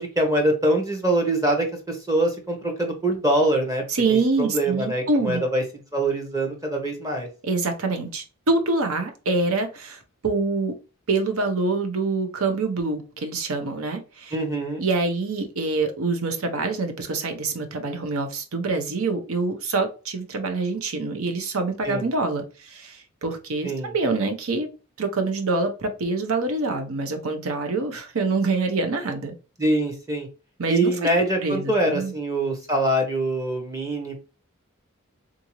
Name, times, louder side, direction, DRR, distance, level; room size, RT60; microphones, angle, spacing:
voice 1, 0.0-3.8 4.1-5.6 5.9-7.3 14.3-14.8 21.8-22.1 23.6-23.9 29.6-30.3 30.7-34.1, right 1 dB, 15° right, 3 dB, 0.8 m, -24 dB
voice 2, 3.9-5.4 7.4-10.7 11.1-14.3 14.8-24.7 25.0-29.3 30.6-30.9 31.4-32.1, right 3 dB, 70° right, 6 dB, 0.8 m, -25 dB
3.7 x 2.6 x 3.0 m, 0.32 s
head